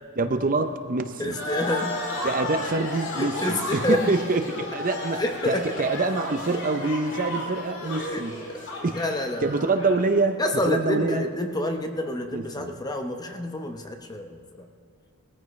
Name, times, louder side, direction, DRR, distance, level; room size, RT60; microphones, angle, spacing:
voice 1, 0.2-1.4 2.2-8.3 8.8-9.0 9.4-11.2 12.3-12.7, right 3 dB, 40° right, 8 dB, 0.6 m, -26 dB
voice 2, 1.2-2.0 3.2-4.1 5.1-5.7 8.1-8.2 8.5-8.7 8.9-9.5 10.4-14.7, left 1 dB, 15° left, 5 dB, 0.8 m, -28 dB
sound 1, 1.3-10.1, left 1 dB, 55° left, 2.0 m, -33 dB
19.5 x 14.0 x 3.2 m, 2.4 s
head